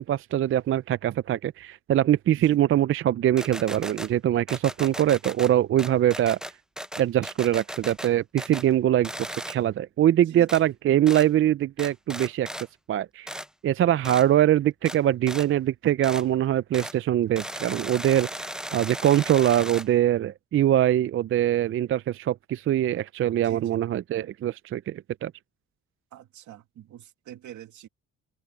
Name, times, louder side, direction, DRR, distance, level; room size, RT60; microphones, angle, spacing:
voice 1, 0.0-6.4 7.0-12.5 12.9-13.3 13.6-25.3, right 12 dB, 45° right, 0.4 m, -23 dB
sound 1, 3.4-4.1 4.5-5.5 5.8-8.1 8.4-8.7 9.0-9.6 10.5-10.6 11.1-11.3 11.8-12.7 13.3-13.5 14.0-14.3 14.9-15.0 15.3-15.5 16.0-16.2 16.7-17.0 17.4-19.9, equal, ahead, 0.7 m, -36 dB
voice 2, 23.4-23.8 26.1-27.9, right 11 dB, 75° right, 2.1 m, -45 dB
cardioid pair, 90°, 30 cm